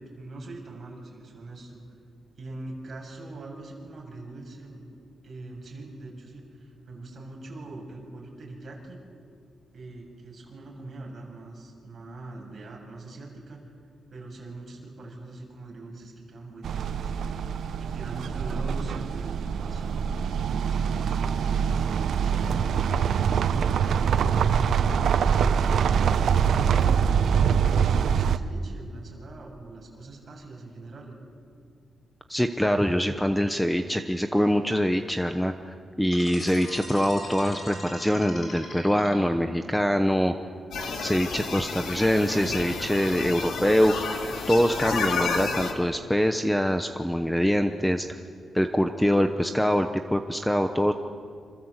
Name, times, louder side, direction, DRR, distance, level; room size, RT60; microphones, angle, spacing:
voice 1, 0.0-1.8 2.4-4.8 5.2-9.0 9.7-13.6 14.1-17.3 17.8-20.1 20.4-22.6 23.0-25.0 25.8-31.2, right 2 dB, 40° right, -1 dB, 7.2 m, -42 dB
sound 1, 16.6-28.4, right 7 dB, 70° right, 0.9 m, -24 dB
voice 2, 32.3-40.3 41.0-43.9 44.5-48.2 48.5-50.9, equal, 5° left, 7 dB, 0.9 m, -24 dB
sound 2, 36.1-39.6, left 1 dB, 40° left, 7.6 m, -40 dB
sound 3, 40.7-45.7, left 4 dB, 85° left, 3.6 m, -31 dB
27.0 x 26.5 x 8.2 m, 2.2 s
wide cardioid pair, 140°, 0 cm